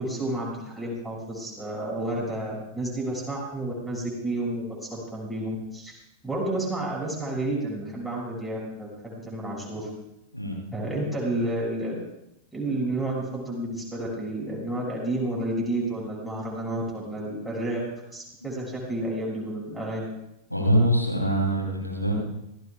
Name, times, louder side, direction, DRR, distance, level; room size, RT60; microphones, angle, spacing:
voice 1, 0.0-6.0 6.2-9.9 10.7-12.0 12.5-17.8 18.1-20.1, right 1 dB, ahead, -4 dB, 6.4 m, -30 dB
voice 2, 20.5-22.1, right 1 dB, 90° left, 0 dB, 3.3 m, -23 dB
26.5 x 17.0 x 2.4 m, 0.84 s
figure-of-eight pair, 90°, 0 cm